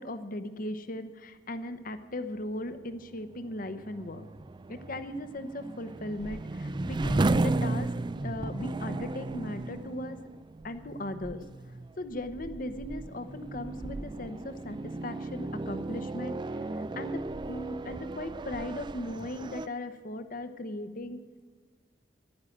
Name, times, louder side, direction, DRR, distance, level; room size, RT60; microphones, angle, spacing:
voice 1, 0.0-4.3 4.7-7.9 8.2-10.2 10.6-11.4 12.0-16.3 16.8-17.2 17.5-21.2, left 1 dB, 50° left, 10 dB, 0.9 m, -38 dB
sound 1, 2.6-19.7, right 2 dB, 25° right, 0.4 m, -35 dB
11.5 x 9.7 x 8.6 m, 1.5 s
head